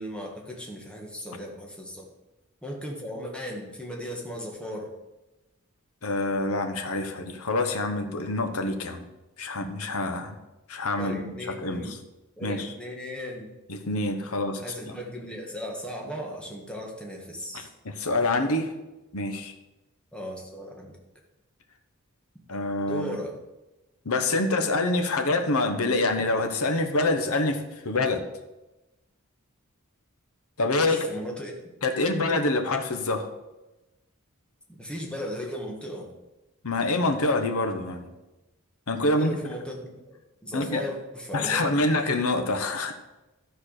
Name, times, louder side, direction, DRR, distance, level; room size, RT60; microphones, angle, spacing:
voice 1, 0.0-2.1 2.6-4.9 11.0-12.0 12.4-13.5 14.6-17.7 20.1-20.9 22.8-23.3 30.8-31.5 34.7-36.1 39.0-39.8 40.1-41.8, equal, 5° left, -1 dB, 1.7 m, -36 dB
voice 2, 6.0-9.1 9.4-10.4 10.7-12.0 12.4-12.7 13.7-14.6 17.5-18.7 19.1-19.5 22.5-23.2 24.0-28.2 30.6-31.1 31.8-33.3 36.6-38.1 38.9-39.4 40.5-40.8 41.3-42.9, left 2 dB, 80° left, 7 dB, 1.2 m, -26 dB
12.5 x 4.7 x 6.5 m, 1.0 s
head